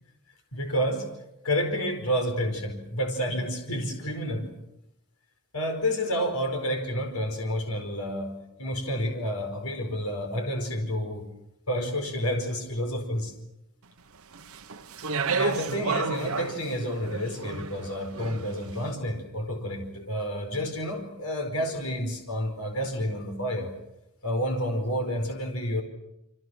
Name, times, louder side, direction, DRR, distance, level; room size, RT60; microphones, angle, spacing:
voice 1, 0.5-1.1 1.4-4.5 5.5-11.3 11.7-13.3 15.3-23.7 24.2-25.8, equal, 85° left, 4 dB, 4.9 m, -29 dB
Speech, 14.3-18.7, right 5 dB, 75° right, 1.2 m, -32 dB
29.0 x 26.0 x 6.4 m, 0.85 s
head